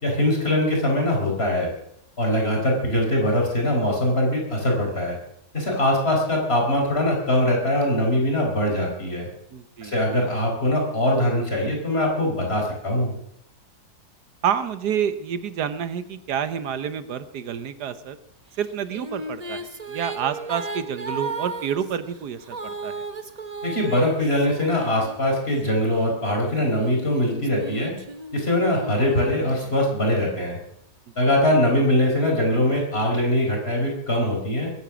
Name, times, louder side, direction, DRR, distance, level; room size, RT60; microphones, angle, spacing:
voice 1, 0.0-1.7 2.2-5.2 5.5-9.3 9.8-13.1 23.6-27.9 28.3-30.6 31.2-34.7, left 1 dB, 40° left, 0 dB, 4.9 m, -22 dB
voice 2, 2.3-2.6 9.5-9.9 14.4-18.2 18.6-23.0, right 8 dB, 90° right, 12 dB, 1.6 m, -29 dB
Female singing, 18.6-25.5 26.2-30.0, right 3 dB, 30° right, 1.0 m, -36 dB
22.0 x 10.0 x 6.2 m, 0.75 s
omnidirectional pair, 1.7 m